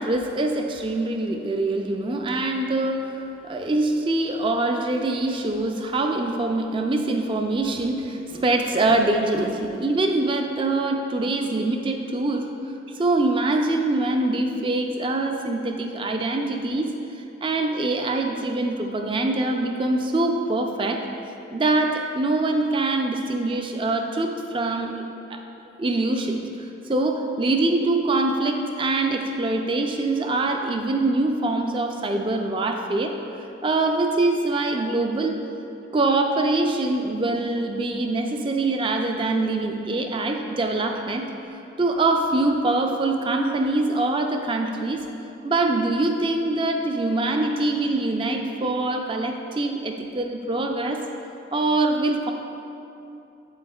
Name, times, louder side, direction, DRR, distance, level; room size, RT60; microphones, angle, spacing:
voice 1, 0.0-3.2 3.4-12.5 13.0-16.9 17.4-21.0 21.5-25.0 25.3-25.4 25.8-33.1 33.6-35.4 35.9-41.3 41.8-45.0 45.4-51.0 51.5-52.3, right 2 dB, 25° right, 4 dB, 0.4 m, -24 dB
7.8 x 7.7 x 2.3 m, 2.8 s
head